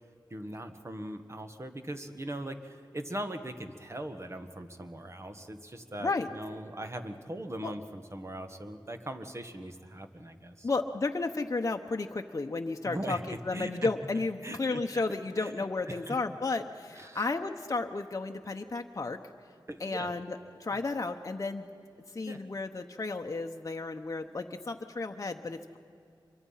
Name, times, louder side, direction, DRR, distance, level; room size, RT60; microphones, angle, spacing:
voice 1, 0.3-10.7 12.8-13.9 14.4-14.8 15.4-16.2 16.9-17.3 19.7-20.1 22.2-22.5, right 1 dB, 35° right, 7 dB, 1.5 m, -40 dB
voice 2, 10.6-19.2 19.8-21.7 22.1-25.8, left 3 dB, 40° left, 3 dB, 0.9 m, -33 dB
26.0 x 23.5 x 5.7 m, 2.4 s
wide cardioid pair, 75°, 8 cm